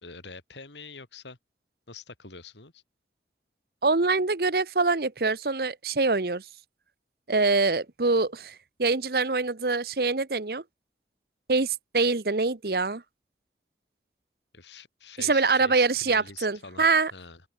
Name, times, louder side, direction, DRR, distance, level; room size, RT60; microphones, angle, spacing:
voice 1, 0.0-1.4 1.9-2.8 14.5-16.9 17.1-17.4, left 4 dB, 90° left, 3.4 m, -45 dB
voice 2, 3.8-6.4 7.3-10.6 11.5-13.0 15.2-17.1, right 3 dB, 60° right, 1.0 m, -24 dB
open air
head